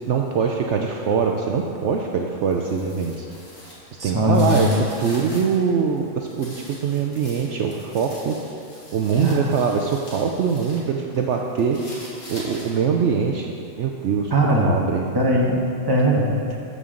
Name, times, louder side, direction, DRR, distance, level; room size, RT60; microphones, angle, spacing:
voice 1, 0.1-3.3 4.0-8.3 8.9-11.8 12.3-15.1, right 6 dB, 65° right, 2 dB, 0.9 m, -23 dB
sound 1, 2.4-5.6 6.0-10.8 11.1-12.9, left 1 dB, 70° left, 2.6 m, -42 dB
voice 2, 4.0-4.7 9.2-9.5 14.3-14.9 15.1-15.6 15.9-16.4, equal, 20° right, -2 dB, 1.1 m, -20 dB
13.5 x 7.2 x 3.8 m, 2.6 s
omnidirectional pair, 1.4 m